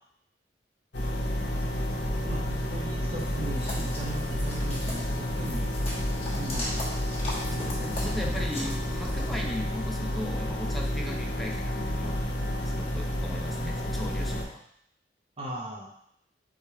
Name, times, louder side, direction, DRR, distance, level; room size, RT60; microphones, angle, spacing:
sound 1, 0.9-14.4, equal, 75° left, 0.8 m, -30 dB
voice 1, 2.2-6.9 15.4-15.9, right 1 dB, 35° right, -3 dB, 0.7 m, -39 dB
sound 2, 3.2-9.4, left 1 dB, 35° left, 1.3 m, -39 dB
voice 2, 7.5-14.6, left 1 dB, ahead, 0 dB, 0.4 m, -38 dB
3.6 x 3.1 x 4.5 m, 0.70 s
head